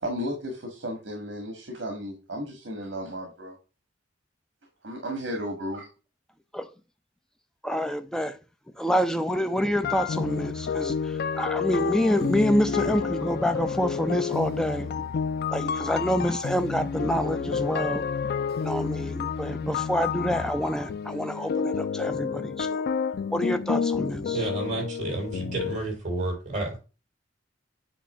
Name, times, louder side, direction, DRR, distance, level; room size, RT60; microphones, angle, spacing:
voice 1, 0.0-3.5 4.8-5.9, equal, 70° right, 1.7 m, -34 dB
voice 2, 7.6-8.4 8.8-15.1 15.5-18.0 18.6-22.9 23.3-24.4, equal, 5° left, 0.5 m, -27 dB
sound 1, 9.8-25.8, left 6 dB, 55° left, 0.3 m, -30 dB
voice 3, 24.3-26.8, right 2 dB, 40° right, 4.0 m, -30 dB
8.6 x 3.1 x 5.5 m
head